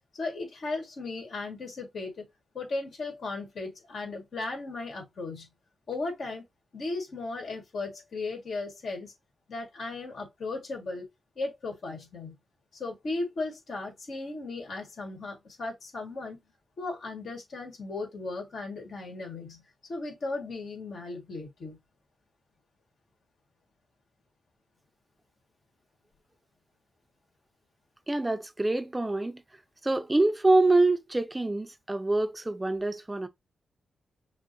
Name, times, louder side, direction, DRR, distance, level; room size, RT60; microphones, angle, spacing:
voice 1, 0.1-2.3 2.5-5.5 5.9-6.4 6.7-9.1 9.5-11.1 11.3-12.4 12.7-16.4 16.8-19.6 19.9-21.8, left 3 dB, 70° left, 1.7 m, -36 dB
voice 2, 28.1-29.4 29.8-33.3, right 2 dB, 20° right, 0.4 m, -25 dB
5.9 x 2.1 x 2.9 m
cardioid pair, 60°, 0 cm